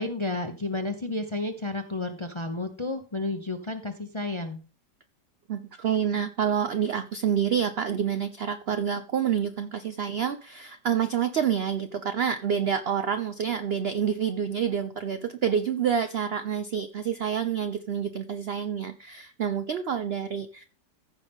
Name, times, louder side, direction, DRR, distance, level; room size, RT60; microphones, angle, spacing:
voice 1, 0.0-4.6, left 2 dB, 30° left, 6 dB, 0.5 m, -31 dB
voice 2, 5.5-20.6, right 8 dB, 75° right, 10 dB, 0.5 m, -28 dB
15.0 x 5.5 x 3.6 m, 0.35 s
omnidirectional pair, 1.8 m